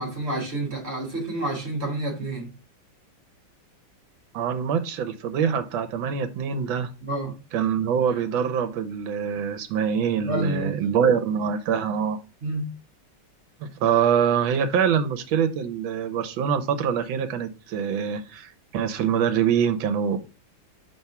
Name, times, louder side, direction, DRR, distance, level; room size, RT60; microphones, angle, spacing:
voice 1, 0.0-2.5 7.0-7.4 10.2-10.8 12.4-12.7, right 1 dB, 35° right, 1.7 m, -29 dB
voice 2, 4.3-6.9 7.5-12.2 13.6-20.2, right 7 dB, 80° right, 1.5 m, -24 dB
4.7 x 3.6 x 5.6 m
omnidirectional pair, 2.1 m